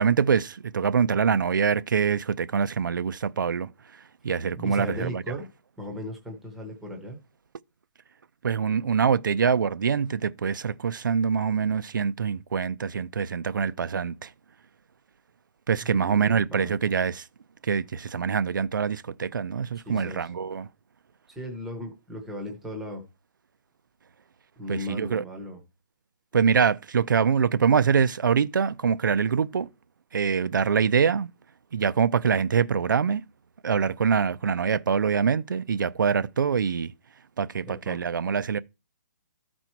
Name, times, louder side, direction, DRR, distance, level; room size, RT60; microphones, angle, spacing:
voice 1, 0.0-5.2 8.4-14.3 15.7-17.3 17.6-20.7 24.7-25.2 26.3-29.7 30.1-31.3 31.7-33.2 33.6-36.9 37.4-38.6, right 6 dB, 80° right, 0.6 m, -24 dB
voice 2, 4.5-5.5 5.8-7.2 15.8-16.8 19.9-20.3 21.3-23.0 24.6-25.6 37.6-38.0, equal, ahead, 0.8 m, -37 dB
13.0 x 4.4 x 4.5 m
hypercardioid pair, 180°, 10 cm